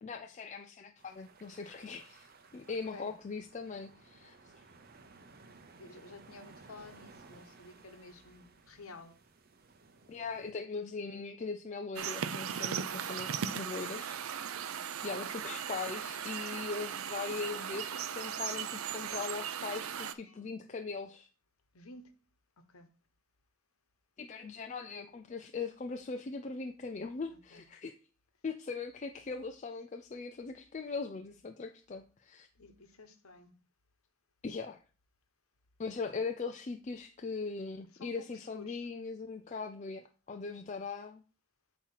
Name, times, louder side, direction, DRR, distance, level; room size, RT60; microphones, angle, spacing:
voice 1, 0.0-4.3 10.1-14.2 15.0-21.3 24.2-27.9 28.4-32.5 34.4-34.8 35.8-41.2, left 4 dB, 35° left, 0.4 m, -40 dB
sound 1, 1.0-10.5, right 3 dB, 45° right, 0.7 m, -58 dB
voice 2, 2.6-3.2 5.8-9.2 19.8-20.4 21.7-22.2 22.6-22.9 27.3-27.6 32.6-33.5 37.9-38.9, left 3 dB, 85° left, 1.1 m, -52 dB
sound 2, 12.0-20.1, right 8 dB, 80° right, 0.5 m, -38 dB
8.3 x 2.9 x 5.7 m
head